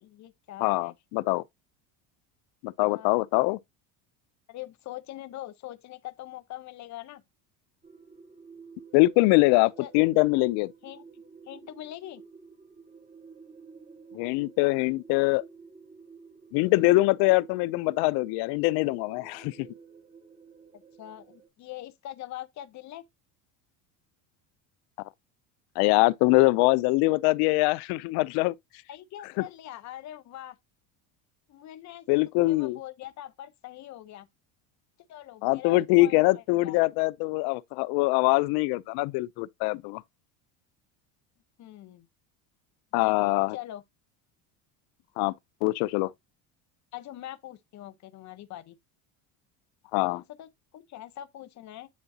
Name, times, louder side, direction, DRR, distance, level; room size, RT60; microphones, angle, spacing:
voice 1, 0.0-0.9 2.9-3.1 4.5-7.2 9.8-9.9 10.8-11.0 11.5-12.2 20.7-23.1 28.9-30.6 31.5-32.2 32.5-34.3 35.1-36.8 41.6-42.1 43.0-43.8 46.9-48.8 50.1-51.9, left 13 dB, 45° left, 0.9 m, -43 dB
voice 2, 0.6-1.4 2.6-3.6 8.9-10.7 14.1-15.4 16.5-19.7 25.8-28.5 32.1-32.8 35.4-40.0 42.9-43.6 45.2-45.3 45.6-46.1 49.9-50.2, left 21 dB, 70° left, 0.5 m, -23 dB
sound 1, 7.8-21.5, right 5 dB, 20° right, 1.7 m, -51 dB
9.4 x 3.8 x 2.7 m
cardioid pair, 125°, 40 cm